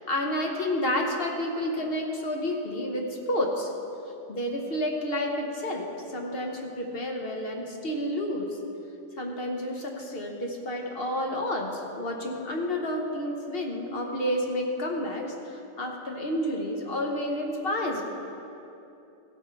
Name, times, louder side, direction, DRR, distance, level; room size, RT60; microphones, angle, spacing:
voice 1, 0.0-3.7 4.3-8.6 9.2-18.0, left 1 dB, 40° left, 1 dB, 0.9 m, -30 dB
15.5 x 7.2 x 4.5 m, 2.9 s
omnidirectional pair, 2.0 m